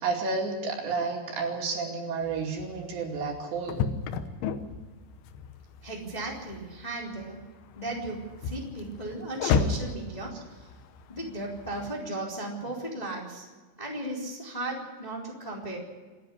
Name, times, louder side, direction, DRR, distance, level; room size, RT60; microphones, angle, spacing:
voice 1, 0.0-3.8, right 4 dB, 65° right, 1 dB, 4.6 m, -31 dB
sound 1, 2.2-11.9, left 6 dB, 80° left, 3.4 m, -34 dB
voice 2, 5.8-7.4 7.7-10.7 11.1-13.5 13.8-15.8, right 2 dB, 10° left, -2 dB, 2.9 m, -36 dB
27.5 x 10.0 x 10.0 m, 1.4 s
omnidirectional pair, 5.7 m